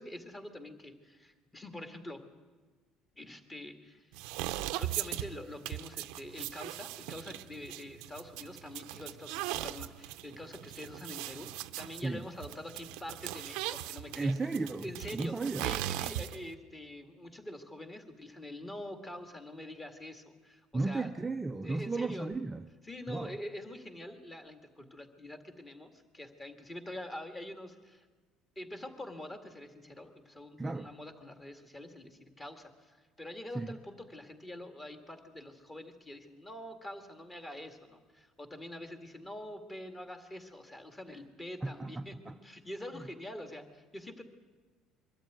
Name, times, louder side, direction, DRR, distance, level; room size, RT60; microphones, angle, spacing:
voice 1, 0.0-2.2 3.2-4.4 4.8-14.3 14.8-21.1 21.6-22.3 22.8-28.1 28.6-44.2, left 1 dB, 15° left, 2.0 m, -45 dB
sound 1, 4.1-16.5, right 15 dB, 85° right, 0.7 m, -39 dB
voice 2, 14.1-15.8 20.7-22.6 23.1-23.4 30.6-30.9 33.5-33.7 41.6-42.4 42.9-43.0, right 3 dB, 15° right, 0.5 m, -34 dB
23.0 x 13.0 x 9.3 m
cardioid pair, 135°, 0 cm